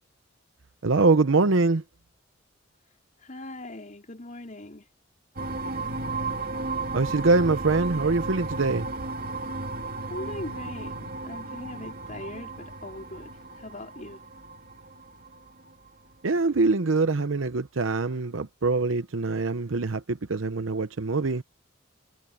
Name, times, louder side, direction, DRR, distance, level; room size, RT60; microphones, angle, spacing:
voice 1, 0.8-1.8 6.9-8.9 16.2-21.4, right 3 dB, 80° right, 0.8 m, -24 dB
voice 2, 3.2-4.9 10.1-14.2, left 1 dB, 40° left, 4.6 m, -40 dB
sound 1, 5.4-15.9, right 3 dB, 45° right, 2.8 m, -34 dB
head